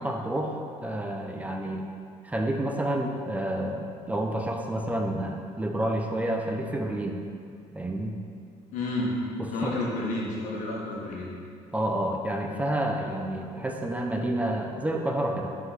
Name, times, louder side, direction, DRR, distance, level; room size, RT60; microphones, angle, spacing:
voice 1, 0.0-1.9 2.2-7.2 7.7-8.1 9.4-9.7 11.7-15.6, right 1 dB, 10° right, 2 dB, 0.5 m, -29 dB
voice 2, 8.7-9.2 9.5-11.3, left 2 dB, 80° left, -3 dB, 1.3 m, -30 dB
5.5 x 3.8 x 5.7 m, 2.4 s
cardioid pair, 105°, 13 cm